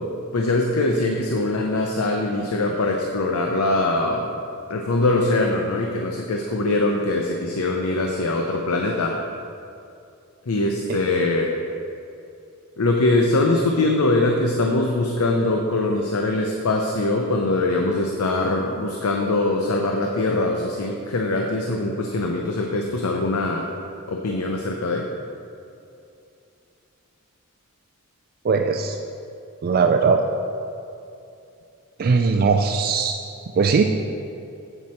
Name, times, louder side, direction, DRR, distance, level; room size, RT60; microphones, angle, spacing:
voice 1, 0.0-4.3 4.7-9.2 10.5-11.5 12.8-23.6 24.1-25.1, left 2 dB, 80° left, 1 dB, 0.7 m, -22 dB
voice 2, 28.4-29.0 29.6-30.2 32.0-33.8, right 5 dB, 45° right, 4 dB, 0.4 m, -20 dB
8.1 x 7.5 x 4.2 m, 2.7 s
head